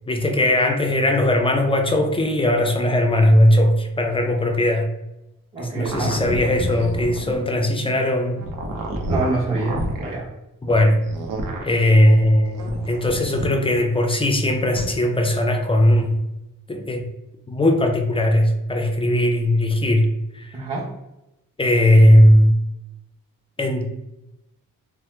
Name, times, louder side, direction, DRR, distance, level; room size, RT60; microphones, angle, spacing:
voice 1, 0.1-4.9 5.7-8.5 10.6-11.0 11.6-16.2 16.7-17.0 17.5-20.1 20.3-20.5 21.6-22.5 23.6-23.9, left 1 dB, 15° left, 4 dB, 0.4 m, -18 dB
voice 2, 5.5-6.2 9.1-10.3 20.5-20.9, right 2 dB, 15° right, -9 dB, 0.9 m, -25 dB
sound 1, 5.9-7.4 8.4-10.1 11.0-11.7 12.5-13.5, right 1 dB, 70° right, 0.7 m, -29 dB
2.8 x 2.0 x 3.2 m, 0.94 s
cardioid pair, 80°, 34 cm